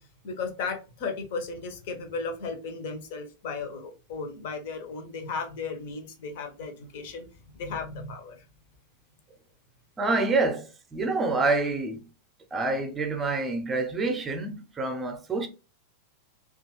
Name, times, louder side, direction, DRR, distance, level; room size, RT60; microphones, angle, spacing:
voice 1, 0.0-8.5, left 4 dB, 50° left, 0.8 m, -35 dB
voice 2, 10.0-12.0 12.5-15.5, right 3 dB, 15° right, 0.7 m, -27 dB
3.0 x 2.4 x 3.0 m
figure-of-eight pair, 90°, 0 cm